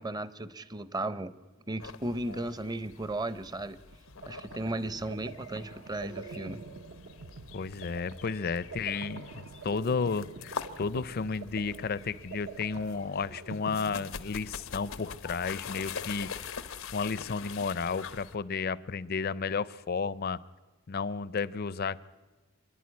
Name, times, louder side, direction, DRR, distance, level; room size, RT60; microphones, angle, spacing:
voice 1, 0.0-1.3 1.7-3.8 4.3-6.7, right 2 dB, 20° right, 15 dB, 0.7 m, -35 dB
sound 1, 1.8-18.4, left 6 dB, 90° left, 0.9 m, -44 dB
sound 2, 3.9-14.8, right 4 dB, 60° right, 0.7 m, -46 dB
voice 2, 7.5-16.3 16.9-20.4 20.9-22.0, left 5 dB, 50° left, 19 dB, 0.5 m, -32 dB
25.0 x 11.0 x 9.5 m, 1.2 s
head